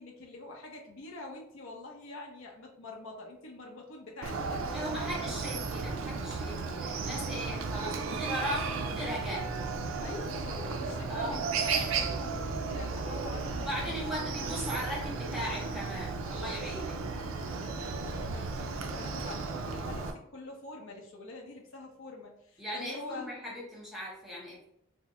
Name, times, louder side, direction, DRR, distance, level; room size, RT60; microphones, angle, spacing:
voice 1, 0.0-4.6 10.0-14.0 17.4-23.3, left 2 dB, 65° left, 1 dB, 0.6 m, -45 dB
Chicken rooster, 4.2-20.1, right 4 dB, 70° right, 0.4 m, -34 dB
voice 2, 4.7-9.5 11.1-11.5 13.6-17.0 22.6-24.7, equal, ahead, -6 dB, 0.9 m, -38 dB
3.5 x 2.0 x 2.9 m, 0.73 s
head